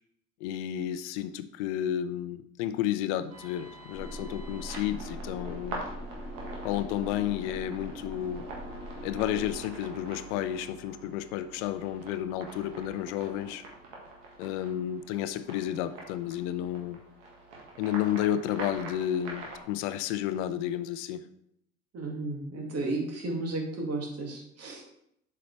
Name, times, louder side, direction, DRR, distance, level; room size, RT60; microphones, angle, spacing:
voice 1, 0.4-5.8 6.6-8.4 9.0-13.7 14.4-17.0 17.8-21.2, left 11 dB, 65° left, 13 dB, 0.6 m, -31 dB
sound 1, 3.3-19.6, right 2 dB, 75° right, 1.8 m, -44 dB
sound 2, 3.9-9.6, equal, 5° right, 2.5 m, -42 dB
voice 2, 21.9-24.8, right 2 dB, 40° right, 1 dB, 2.2 m, -33 dB
7.7 x 5.5 x 3.3 m, 0.75 s
hypercardioid pair, 60°, 37 cm